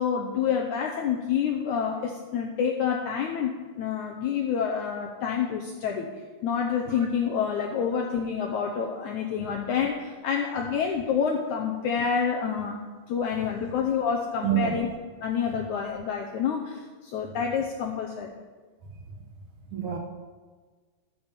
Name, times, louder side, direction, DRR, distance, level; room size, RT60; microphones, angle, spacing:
voice 1, 0.0-6.1 6.4-12.8 13.1-14.9 15.2-18.3, left 7 dB, 75° left, 2 dB, 1.8 m, -28 dB
voice 2, 14.4-14.8 19.7-20.0, right 10 dB, 65° right, 2 dB, 2.3 m, -27 dB
13.0 x 7.1 x 6.8 m, 1.4 s
omnidirectional pair, 4.3 m